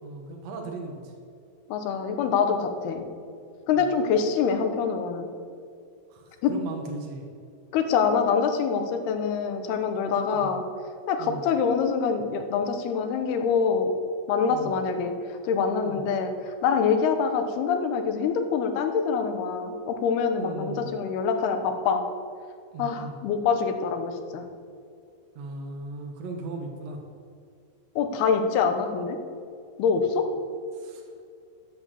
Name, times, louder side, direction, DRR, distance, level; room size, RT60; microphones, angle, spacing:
voice 1, 0.0-1.1 3.7-3.8 6.1-7.2 10.3-10.5 11.2-11.4 14.5-14.8 15.8-16.0 20.4-20.9 22.7-23.1 25.3-27.0 30.7-31.1, right 3 dB, 75° right, 2 dB, 1.5 m, -38 dB
voice 2, 1.7-3.1 3.7-5.3 6.4-6.5 7.7-10.6 11.1-14.0 14.3-22.0 22.8-24.4 28.0-29.2 29.8-30.3, left 6 dB, 70° left, 6 dB, 2.9 m, -25 dB
13.5 x 7.7 x 7.5 m, 2.3 s
omnidirectional pair, 5.0 m